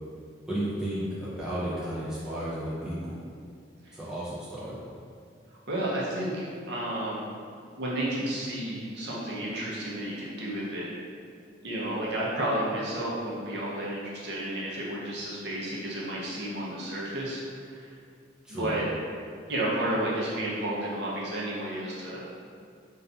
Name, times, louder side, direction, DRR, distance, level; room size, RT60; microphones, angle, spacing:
voice 1, 0.5-3.1 3.9-4.8 18.4-18.7, right 1 dB, 5° right, -10 dB, 0.4 m, -33 dB
voice 2, 5.7-7.2 7.8-10.9 11.6-17.9 18.5-18.9 19.5-22.2, right 1 dB, 65° right, -6 dB, 0.6 m, -32 dB
2.7 x 2.3 x 2.3 m, 2.2 s
head